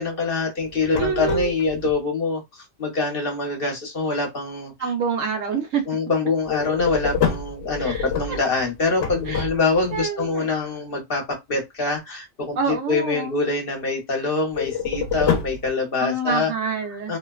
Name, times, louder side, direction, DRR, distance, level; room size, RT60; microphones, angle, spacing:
voice 1, 0.0-4.9 5.9-16.5 17.1-17.2, left 3 dB, 50° left, 1.0 m, -25 dB
sound 1, 0.6-1.9 6.4-10.0 14.5-15.7, left 7 dB, 80° left, 0.9 m, -27 dB
voice 2, 1.0-1.5 4.8-5.8 7.8-8.4 9.3-9.5 9.9-10.5 12.6-13.4 16.0-17.2, right 5 dB, 85° right, 1.1 m, -26 dB
2.8 x 2.2 x 2.3 m
omnidirectional pair, 1.3 m